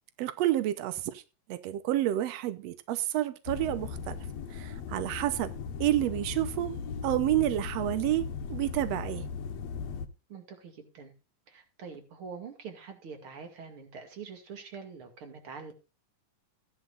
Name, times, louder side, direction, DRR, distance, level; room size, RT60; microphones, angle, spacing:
voice 1, 0.2-1.2 1.5-4.2 4.5-5.5 5.8-6.7 7.0-9.3, right 14 dB, 90° right, 1.4 m, -29 dB
sound 1, 3.5-10.1, left 6 dB, 65° left, 1.9 m, -38 dB
voice 2, 10.3-11.1 11.5-15.7, right 5 dB, 40° right, 2.7 m, -45 dB
16.0 x 10.5 x 2.5 m
omnidirectional pair, 4.0 m